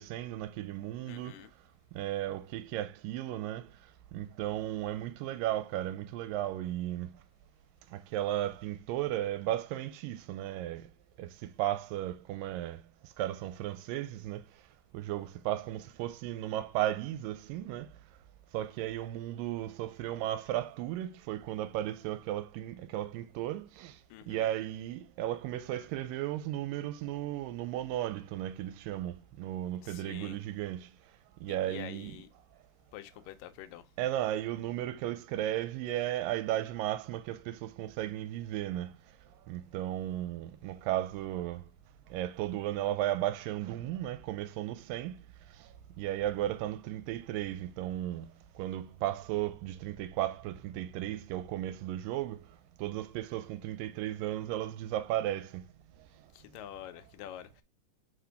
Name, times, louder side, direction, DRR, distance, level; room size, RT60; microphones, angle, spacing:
voice 1, 0.0-1.5 2.0-3.7 4.1-7.1 7.9-10.8 11.2-11.3 11.6-12.8 13.2-14.4 14.9-17.9 18.5-23.9 24.3-30.9 31.4-32.2 34.0-38.9 39.5-41.6 42.1-45.2 46.0-48.3 48.6-52.4 52.8-55.6, right 13 dB, 85° right, 2.2 m, -35 dB
voice 2, 1.1-1.5 24.1-24.5 29.8-30.4 31.5-32.3 32.9-33.9 56.3-57.6, left 12 dB, 80° left, 2.2 m, -47 dB
6.0 x 5.0 x 3.4 m
omnidirectional pair, 4.0 m